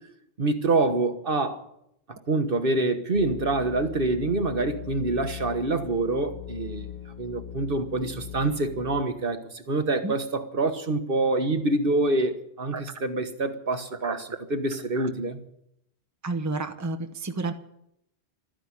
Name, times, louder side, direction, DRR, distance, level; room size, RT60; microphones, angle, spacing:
voice 1, 0.4-1.6 2.1-6.9 7.2-15.4, right 2 dB, 55° right, 1.5 m, -26 dB
sound 1, 3.1-9.0, left 12 dB, 45° left, 0.8 m, -40 dB
voice 2, 16.2-17.5, right 3 dB, 15° right, 1.0 m, -30 dB
13.5 x 10.0 x 9.7 m
omnidirectional pair, 1.1 m